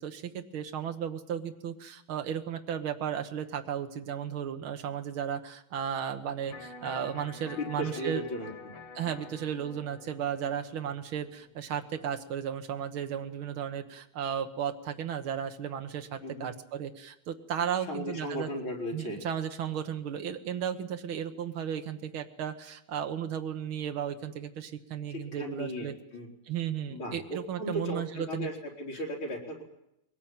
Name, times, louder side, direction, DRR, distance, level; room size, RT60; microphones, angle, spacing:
voice 1, 0.0-8.2 9.0-18.5 18.9-25.9 26.5-28.5, right 8 dB, 70° right, 6 dB, 2.2 m, -34 dB
Electric guitar, 6.5-12.5, left 3 dB, 90° left, 3.3 m, -48 dB
voice 2, 7.6-8.5 16.2-16.5 17.9-19.2 25.1-26.3 26.9-29.6, equal, 65° left, 0 dB, 4.8 m, -36 dB
22.0 x 19.0 x 9.0 m, 0.83 s
omnidirectional pair, 2.4 m